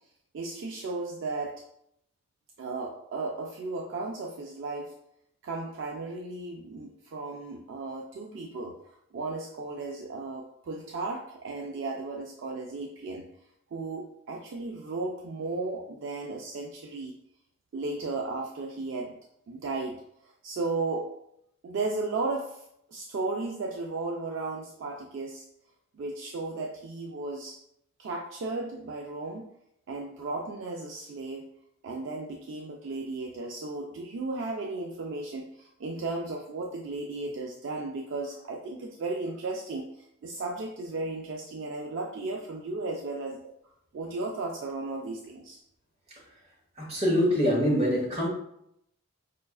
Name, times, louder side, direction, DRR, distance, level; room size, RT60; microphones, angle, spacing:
voice 1, 0.3-1.6 2.6-4.9 5.4-13.2 13.7-17.1 17.7-19.2 19.5-21.1 21.6-25.4 25.9-27.6 28.0-29.5 29.9-31.5 31.8-43.5 43.9-45.6, right 3 dB, 55° right, 0 dB, 0.3 m, -35 dB
voice 2, 46.8-48.3, equal, 30° right, -4 dB, 1.1 m, -24 dB
5.0 x 2.3 x 2.3 m, 0.76 s
head